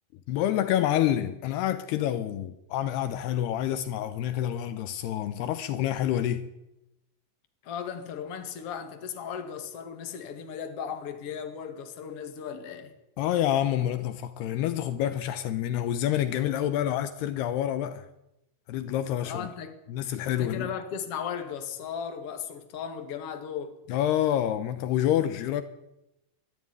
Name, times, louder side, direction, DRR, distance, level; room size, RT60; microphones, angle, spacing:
voice 1, 0.3-6.5 13.2-18.1 18.7-19.5 19.9-20.7 23.9-25.6, left 11 dB, 80° left, 2.8 m, -27 dB
voice 2, 7.6-12.9 19.2-19.8 20.3-23.8, left 7 dB, 40° left, 2.5 m, -36 dB
22.0 x 13.0 x 9.6 m
omnidirectional pair, 4.9 m